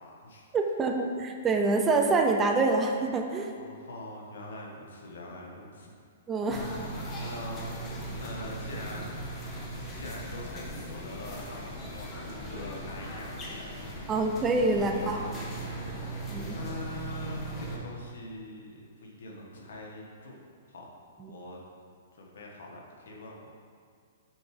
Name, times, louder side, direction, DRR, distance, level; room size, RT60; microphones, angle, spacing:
voice 1, 0.0-0.5 3.6-5.9 6.5-7.7 8.2-9.2 10.0-13.7 14.0-14.1 14.7-15.5 16.0-20.4 20.7-20.9 21.2-21.6 22.1-23.5, left 1 dB, 75° left, -1 dB, 1.5 m, -43 dB
voice 2, 0.5-3.5 6.3-6.6 14.1-15.2 16.3-16.6 21.2-21.3, right 3 dB, 15° right, 3 dB, 0.5 m, -26 dB
sound 1, 6.5-17.8, right 1 dB, 20° left, 1.0 m, -38 dB
6.2 x 4.8 x 4.9 m, 2.1 s
hypercardioid pair, 150°, 0 cm